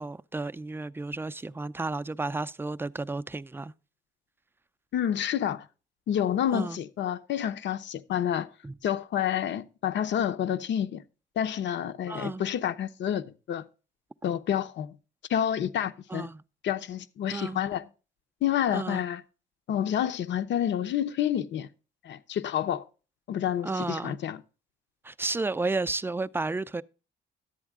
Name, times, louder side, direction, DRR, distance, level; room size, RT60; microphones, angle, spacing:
voice 1, 0.0-3.7 6.5-6.8 8.6-8.7 12.1-12.5 16.1-16.4 17.3-17.6 18.7-19.0 23.6-24.2 25.0-26.8, right 3 dB, 10° right, 0.4 m, -32 dB
voice 2, 4.9-5.6 6.1-8.5 8.8-11.0 11.4-13.6 14.2-15.0 15.3-16.3 16.6-17.9 18.4-19.2 19.7-21.7 22.0-22.8 23.3-24.4, left 10 dB, 65° left, 0.8 m, -29 dB
11.0 x 8.1 x 3.6 m
cardioid pair, 90°, 20 cm